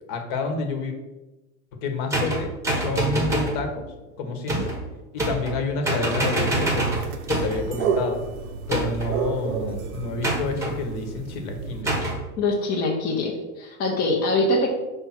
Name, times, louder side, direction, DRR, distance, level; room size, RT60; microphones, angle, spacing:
voice 1, 0.1-0.9 1.7-3.9 4.2-4.7 5.1-6.9 7.3-8.2 8.7-12.0, left 3 dB, 45° left, 5 dB, 1.2 m, -29 dB
sound 1, 2.1-3.6 4.5-4.8 5.2-5.6 5.8-7.6 8.7-9.2 10.2-10.7 11.9-12.2, right 2 dB, 5° right, 1.0 m, -25 dB
sound 2, 6.5-11.8, right 5 dB, 85° right, 1.0 m, -31 dB
voice 2, 12.4-14.7, left 2 dB, 20° left, -2 dB, 0.8 m, -23 dB
5.9 x 3.4 x 5.8 m, 1.1 s
supercardioid pair, 150°, 43 cm